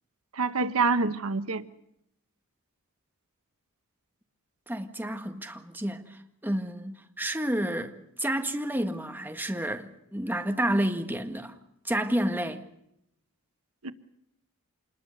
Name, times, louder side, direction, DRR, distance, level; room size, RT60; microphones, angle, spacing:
voice 1, 0.3-1.6 13.8-13.9, right 4 dB, 90° right, 1.1 m, -26 dB
voice 2, 4.7-11.5 11.8-12.6, right 1 dB, 10° right, 1.7 m, -30 dB
26.5 x 21.0 x 6.7 m
head